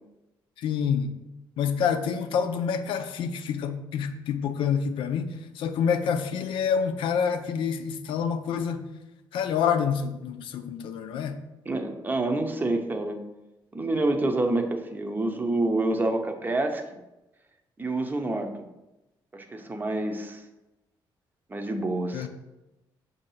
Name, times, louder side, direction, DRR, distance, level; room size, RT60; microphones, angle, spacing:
voice 1, 0.6-1.2 1.6-8.9 9.3-11.4 22.1-22.3, left 7 dB, 85° left, 0.5 m, -27 dB
voice 2, 11.7-13.2 13.7-17.0 17.8-18.7 19.3-20.4 21.5-22.3, right 2 dB, 20° right, 0.6 m, -27 dB
6.4 x 2.7 x 5.6 m
cardioid pair, 120°, 8 cm